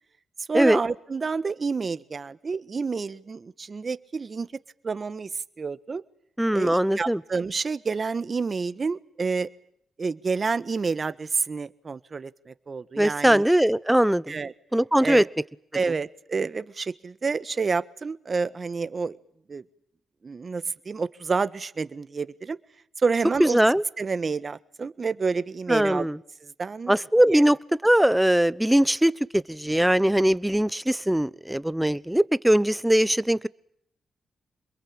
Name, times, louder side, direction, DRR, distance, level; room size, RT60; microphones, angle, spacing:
voice 1, 0.4-4.5 4.8-5.3 5.6-6.0 6.5-9.5 10.0-13.4 14.3-14.5 15.0-15.3 15.7-19.2 19.5-19.6 20.2-22.6 23.0-23.6 24.0-26.1 26.4-26.9 27.2-27.4, right 4 dB, 45° right, 14 dB, 1.5 m, -29 dB
voice 2, 6.4-7.2 13.0-14.4 14.7-15.2 23.4-23.8 25.7-26.2 26.9-27.6 27.8-33.5, right 1 dB, 5° right, 18 dB, 1.0 m, -21 dB
27.0 x 22.0 x 8.7 m, 0.69 s
supercardioid pair, 60°, 0 cm